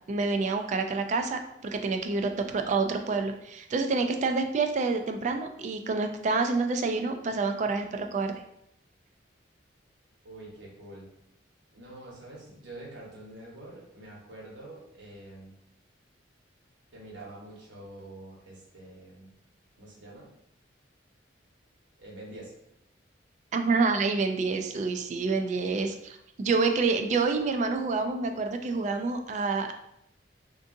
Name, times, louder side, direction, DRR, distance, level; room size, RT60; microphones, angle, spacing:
voice 1, 0.1-8.3 23.5-29.7, right 4 dB, 40° right, 6 dB, 0.3 m, -28 dB
voice 2, 10.2-11.1 11.7-15.6 16.9-19.4 19.7-20.3 22.0-22.5, right 1 dB, 85° right, -4 dB, 1.1 m, -46 dB
3.5 x 2.6 x 2.5 m, 0.77 s
head